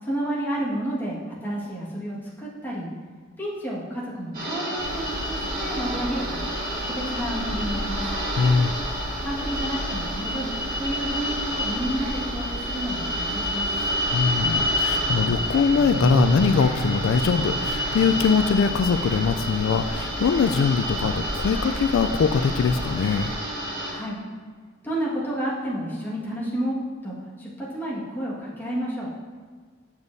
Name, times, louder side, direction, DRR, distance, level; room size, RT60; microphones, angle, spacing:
voice 1, 0.0-2.9 3.4-6.4 6.9-8.1 9.2-13.7 23.9-24.2 24.8-26.8 27.0-29.1, right 1 dB, 10° left, -7 dB, 1.6 m, -30 dB
sound 1, 4.3-23.9, equal, 45° right, 2.2 m, -29 dB
sound 2, 4.8-23.3, equal, 25° right, 1.2 m, -35 dB
voice 2, 8.3-8.7 14.1-23.3, left 5 dB, 75° left, 9 dB, 0.3 m, -22 dB
sound 3, 14.9-20.2, right 2 dB, 80° right, 0.6 m, -32 dB
8.1 x 7.0 x 2.6 m, 1.5 s
head